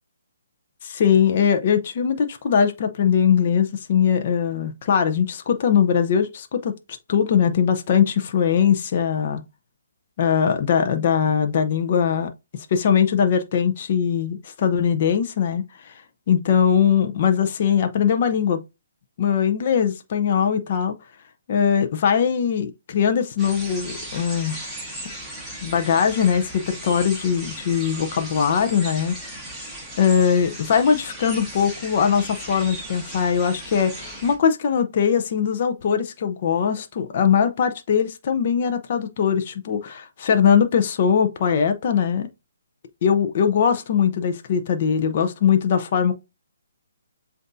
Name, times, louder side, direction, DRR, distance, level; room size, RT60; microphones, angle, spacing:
voice 1, 0.8-6.7 7.1-9.4 10.2-12.3 12.7-16.0 16.3-18.6 19.2-20.9 21.5-24.8 25.6-29.2 30.0-42.3 43.0-46.1, left 7 dB, 45° left, 0.7 m, -21 dB
sound 1, 23.4-34.4, right 1 dB, ahead, 1.2 m, -37 dB
7.7 x 2.6 x 2.6 m
hypercardioid pair, 155°, 0 cm